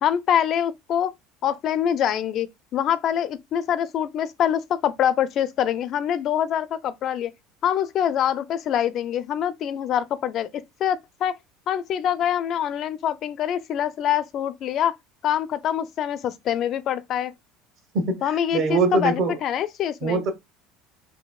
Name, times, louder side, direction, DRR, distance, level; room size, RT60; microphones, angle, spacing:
voice 1, 0.0-1.1 1.4-2.5 2.7-7.3 7.6-11.4 11.7-14.9 15.2-17.3 18.2-20.2, left 9 dB, 45° left, 0.4 m, -25 dB
voice 2, 17.9-19.4 20.0-20.3, right 3 dB, 50° right, 1.1 m, -23 dB
4.1 x 2.7 x 2.3 m
cardioid pair, 135°, 0 cm